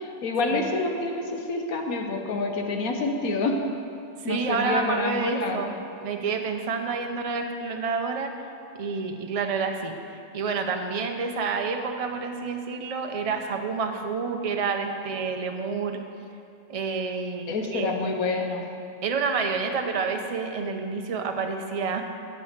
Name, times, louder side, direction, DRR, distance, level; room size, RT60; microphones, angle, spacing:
voice 1, 0.0-3.6 4.2-5.6 17.5-18.6, left 3 dB, 85° left, 3 dB, 1.4 m, -27 dB
voice 2, 4.2-5.7 6.0-8.3 8.8-10.0 10.3-16.0 16.7-18.1 19.0-22.0, right 5 dB, 35° right, 4 dB, 0.6 m, -29 dB
8.8 x 6.3 x 8.0 m, 2.5 s
omnidirectional pair, 1.4 m